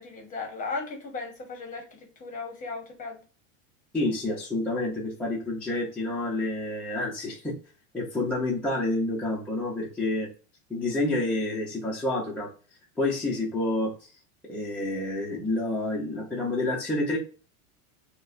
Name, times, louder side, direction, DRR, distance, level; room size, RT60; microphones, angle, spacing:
voice 1, 0.0-3.2, left 4 dB, 20° left, 2 dB, 0.9 m, -36 dB
voice 2, 3.9-7.5 7.9-10.3 10.7-12.5 13.0-14.1 14.5-17.2, left 2 dB, 5° left, -7 dB, 0.4 m, -28 dB
5.2 x 2.1 x 2.4 m, 0.37 s
supercardioid pair, 155°, 40 cm